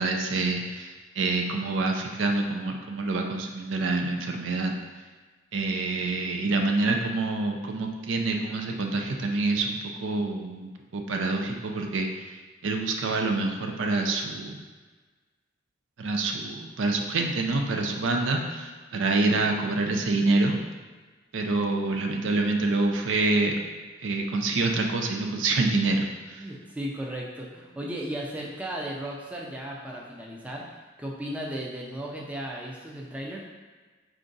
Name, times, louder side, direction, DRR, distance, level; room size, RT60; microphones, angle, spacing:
voice 1, 0.0-4.7 5.5-12.4 12.6-14.6 16.0-20.6 21.3-23.6 24.0-26.5, right 3 dB, 85° right, 3 dB, 0.5 m, -27 dB
voice 2, 26.4-33.4, right 1 dB, 5° right, -3 dB, 0.4 m, -35 dB
4.5 x 2.5 x 3.9 m, 1.4 s
head